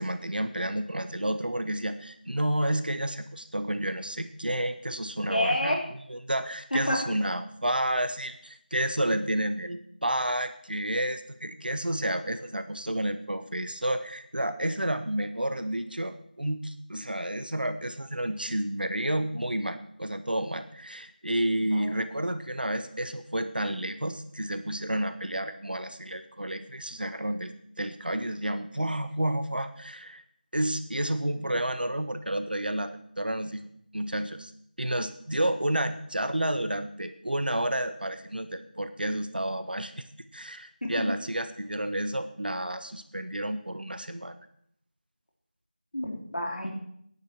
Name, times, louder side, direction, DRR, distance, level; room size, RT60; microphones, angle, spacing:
voice 1, 0.0-5.8 6.1-27.5 27.8-30.2 30.5-33.7 33.9-34.5 34.8-40.1 40.3-44.3, right 1 dB, 70° right, 10 dB, 1.5 m, -30 dB
voice 2, 5.3-5.8 6.7-7.0 21.5-21.9 40.8-41.1 45.9-46.7, left 1 dB, 65° left, 1 dB, 3.4 m, -29 dB
15.0 x 10.5 x 4.6 m, 0.68 s
figure-of-eight pair, 170°, 5 cm